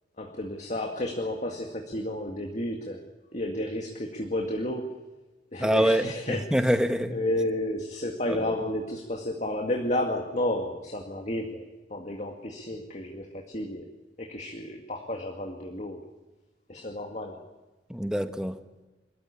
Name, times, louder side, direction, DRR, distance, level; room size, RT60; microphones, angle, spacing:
voice 1, 0.2-3.1 3.3-4.9 5.5-6.7 7.1-13.9 14.2-16.0 16.7-17.4, left 1 dB, 40° left, 2 dB, 2.0 m, -32 dB
voice 2, 5.6-7.2 8.3-8.5 17.9-18.6, equal, 5° right, 8 dB, 1.2 m, -25 dB
26.5 x 14.5 x 10.0 m, 1.2 s
head